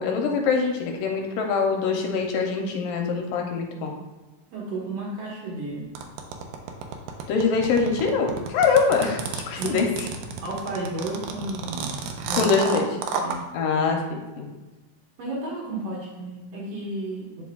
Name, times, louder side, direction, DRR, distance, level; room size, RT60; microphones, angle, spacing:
voice 1, 0.0-4.0 7.3-10.1 12.3-12.8 13.5-14.5, left 5 dB, 80° left, 2 dB, 2.1 m, -24 dB
voice 2, 4.5-5.8 9.6-9.8 10.4-12.0 12.3-12.8 13.2-13.4 15.2-17.4, right 2 dB, 60° right, -3 dB, 1.9 m, -32 dB
sound 1, 6.0-13.4, right 6 dB, 80° right, 2.0 m, -31 dB
8.7 x 5.9 x 2.3 m, 1.2 s
omnidirectional pair, 4.5 m